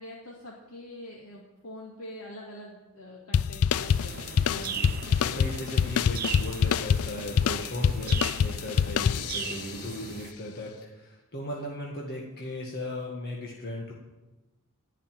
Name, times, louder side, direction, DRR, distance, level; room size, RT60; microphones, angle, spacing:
voice 1, 0.0-4.5, left 1 dB, 90° left, -4 dB, 2.2 m, -44 dB
sound 1, 3.3-9.7, left 7 dB, 70° left, 0.4 m, -26 dB
sound 2, 3.8-10.3, right 7 dB, 40° right, 0.8 m, -39 dB
voice 2, 4.5-4.9 5.2-13.9, left 1 dB, 45° left, -2 dB, 1.8 m, -37 dB
17.0 x 5.7 x 9.3 m, 1.1 s
head